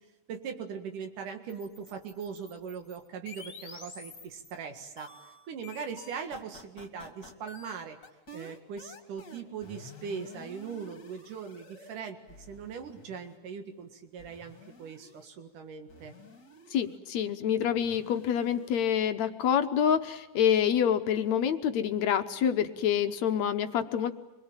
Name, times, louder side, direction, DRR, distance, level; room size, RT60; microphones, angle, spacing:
voice 1, 0.3-8.0 8.3-16.1, right 6 dB, 90° right, 6 dB, 3.5 m, -40 dB
sound 1, 1.5-4.6 5.0-12.0 12.3-13.4 14.2-15.3 15.9-17.0 17.8-18.8, left 2 dB, 35° left, 3.5 m, -50 dB
voice 2, 16.7-24.1, left 8 dB, 70° left, 8 dB, 2.2 m, -27 dB
26.5 x 21.5 x 8.9 m, 1.1 s
omnidirectional pair, 3.5 m